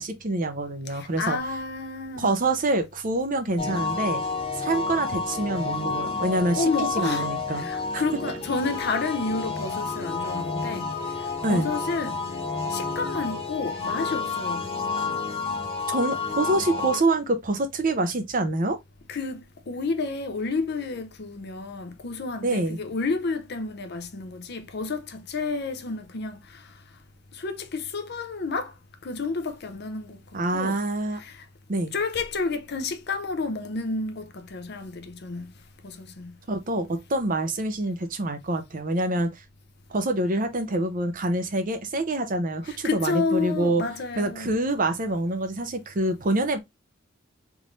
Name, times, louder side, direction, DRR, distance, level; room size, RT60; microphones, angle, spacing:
voice 1, 0.0-1.4 2.2-4.2 4.5-6.7 6.9-7.7 7.9-8.0 11.4-11.7 15.9-18.8 22.4-22.8 30.3-31.2 31.7-31.9 36.5-39.3 39.9-43.8 44.2-46.6, right 2 dB, 45° right, 0.7 m, -26 dB
voice 2, 0.9-2.3 6.5-10.9 11.2-12.2 12.7-14.7 19.1-26.7 27.3-28.7 29.0-30.2 30.5-30.8 31.2-31.5 31.9-35.5 35.8-36.3 39.1-39.2 42.6-44.5, left 4 dB, 55° left, 0.6 m, -30 dB
sound 1, 3.6-17.0, left 4 dB, 30° left, 1.0 m, -30 dB
3.6 x 2.6 x 3.1 m
head